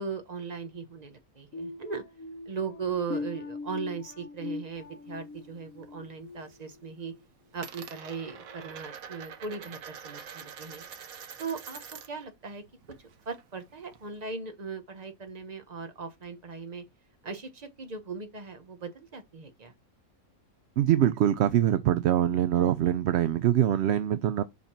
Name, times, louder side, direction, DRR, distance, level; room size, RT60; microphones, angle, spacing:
voice 1, 0.0-2.0 2.5-7.1 7.5-10.8 11.4-11.8 12.1-12.6 13.0-16.8 17.2-19.7, right 5 dB, 30° right, 1.1 m, -38 dB
sound 1, 1.5-7.2 7.6-7.9 8.4-8.6, left 3 dB, 70° left, 1.2 m, -41 dB
Coin (dropping), 4.8-5.9 6.2-6.7 7.0-12.3 12.6-14.3, right 7 dB, 90° right, 1.4 m, -46 dB
voice 2, 20.8-24.4, right 11 dB, 65° right, 0.7 m, -24 dB
5.3 x 4.8 x 5.9 m
omnidirectional pair, 1.4 m